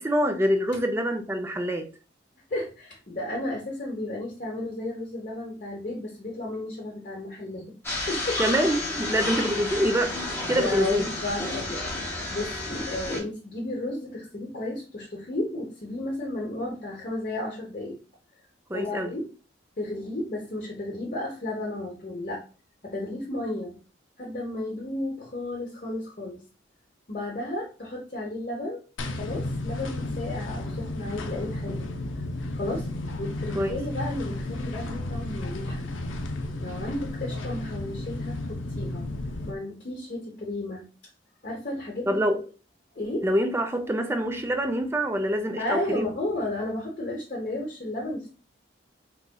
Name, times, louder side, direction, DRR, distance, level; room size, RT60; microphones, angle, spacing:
voice 1, 0.0-1.9 8.4-10.1 10.5-11.0 18.7-19.1 33.5-33.8 42.1-42.4 43.2-46.1, equal, 15° right, 0.4 m, -25 dB
voice 2, 2.5-7.7 8.1-8.4 9.2-9.3 10.6-11.8 12.3-18.0 18.7-19.3 19.8-22.4 22.8-23.8 24.2-26.4 27.1-28.8 29.1-31.9 32.5-32.9 33.2-35.9 36.6-39.1 39.4-40.8 41.4-42.2 42.9-43.3 45.6-48.3, left 1 dB, 45° left, 0.8 m, -33 dB
southcarolina welcomebathroomnorth, 7.8-13.2, left 2 dB, 10° left, 0.9 m, -31 dB
sound 1, 29.0-39.6, left 2 dB, 85° left, 0.5 m, -33 dB
3.9 x 3.0 x 2.2 m
head